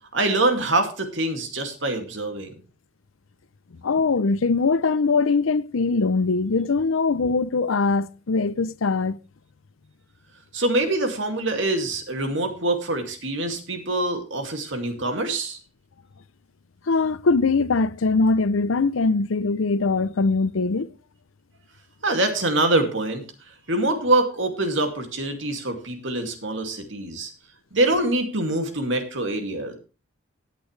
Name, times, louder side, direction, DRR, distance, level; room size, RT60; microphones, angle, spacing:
voice 1, 0.1-2.5 10.5-15.6 22.0-23.2 23.7-27.3 27.7-29.7, right 2 dB, 70° right, 2.4 m, -24 dB
voice 2, 3.8-9.2 16.9-20.9, left 4 dB, 90° left, 0.6 m, -22 dB
16.5 x 8.5 x 3.3 m
head